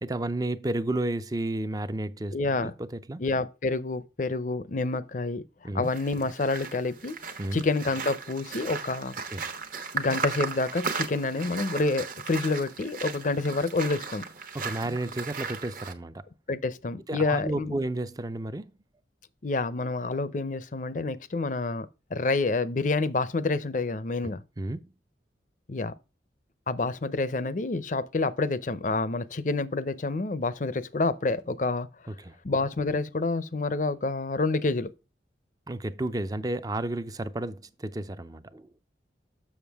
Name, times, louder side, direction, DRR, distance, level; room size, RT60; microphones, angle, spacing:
voice 1, 0.0-3.2 5.6-5.9 7.4-7.6 9.3-9.5 14.5-16.2 17.1-18.7 24.6-24.9 32.1-32.4 35.7-38.7, right 1 dB, 20° right, 0.5 m, -32 dB
voice 2, 2.3-2.7 3.2-5.4 5.7-7.2 7.5-9.1 9.9-14.2 16.5-17.7 19.4-24.4 25.7-25.9 26.7-31.9 32.4-34.9, left 3 dB, 45° left, 0.5 m, -28 dB
sound 1, 5.8-15.9, right 5 dB, 50° right, 1.0 m, -36 dB
7.2 x 6.6 x 3.4 m
head